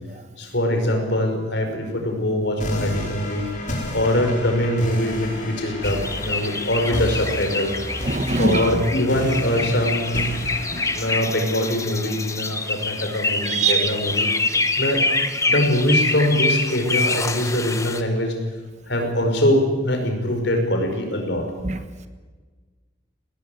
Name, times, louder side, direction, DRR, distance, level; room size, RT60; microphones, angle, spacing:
voice 1, 0.4-3.5 3.9-7.8 8.4-10.3 10.9-14.3 14.8-15.0 15.5-18.3 18.9-21.5, left 1 dB, 60° left, 5.3 m, -23 dB
sound 1, 2.6-13.6, left 1 dB, 40° left, 5.2 m, -32 dB
sound 2, 5.8-18.0, left 3 dB, 15° left, 1.1 m, -26 dB
voice 2, 8.0-8.8 10.6-10.9 13.4-13.9 21.6-21.8, right 3 dB, 35° right, 1.3 m, -23 dB
20.0 x 19.0 x 9.4 m
head